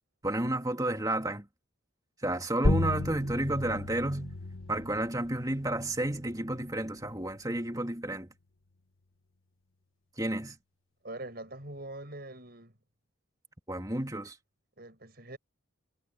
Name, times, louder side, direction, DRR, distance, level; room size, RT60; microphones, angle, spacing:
voice 1, 0.2-1.5 2.2-4.4 4.7-8.3 10.2-10.6 13.7-14.4, right 1 dB, 15° right, 2.6 m, -31 dB
sound 1, 2.6-7.7, left 2 dB, 80° left, 1.5 m, -34 dB
voice 2, 11.0-12.7 14.8-15.4, right 2 dB, 50° right, 6.5 m, -43 dB
head